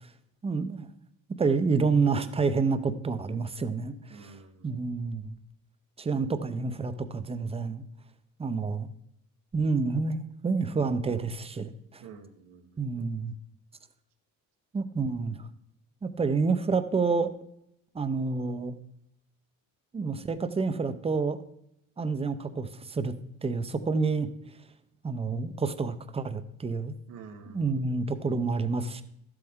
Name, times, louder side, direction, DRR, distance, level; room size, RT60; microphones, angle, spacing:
voice 1, 0.4-0.9 1.4-4.3 4.6-5.3 6.0-7.8 8.4-8.9 9.5-12.0 12.8-13.3 14.7-15.4 16.0-17.3 17.9-18.7 19.9-21.4 22.0-23.1 23.4-24.3 25.0-26.9 27.5-29.0, right 4 dB, 15° right, 11 dB, 0.6 m, -28 dB
voice 2, 4.1-5.0 12.0-13.0 27.1-28.2, right 5 dB, 90° right, 4 dB, 1.5 m, -49 dB
12.5 x 7.9 x 3.6 m, 0.76 s
cardioid pair, 130°, 35 cm